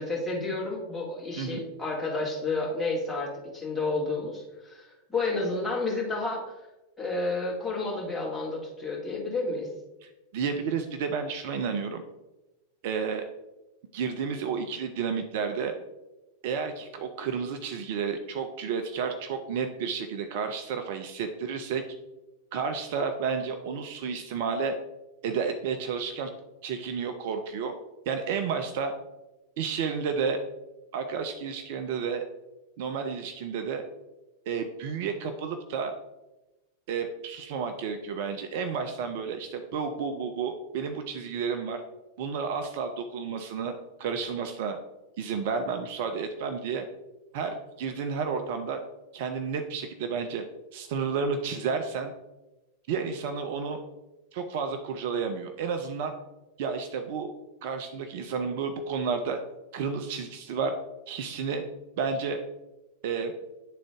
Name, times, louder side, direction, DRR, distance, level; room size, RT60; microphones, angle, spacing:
voice 1, 0.0-6.4 7.0-9.7, left 3 dB, 5° left, -5 dB, 2.2 m, -31 dB
voice 2, 10.0-12.0 12.8-13.2 13.9-15.7 16.4-21.8 22.5-24.7 25.2-26.3 26.6-27.7 28.1-28.9 29.6-30.4 30.9-32.2 32.8-33.8 34.5-35.9 36.9-41.8 42.2-44.8 45.2-46.8 47.3-48.8 49.1-50.4 50.7-52.1 52.9-53.8 54.3-56.1 56.6-57.3 57.6-59.4 59.7-60.8 61.1-61.6 62.0-62.4 63.0-63.3, right 5 dB, 50° right, 6 dB, 0.5 m, -31 dB
9.2 x 3.7 x 3.5 m, 1.0 s
figure-of-eight pair, 90°, 0 cm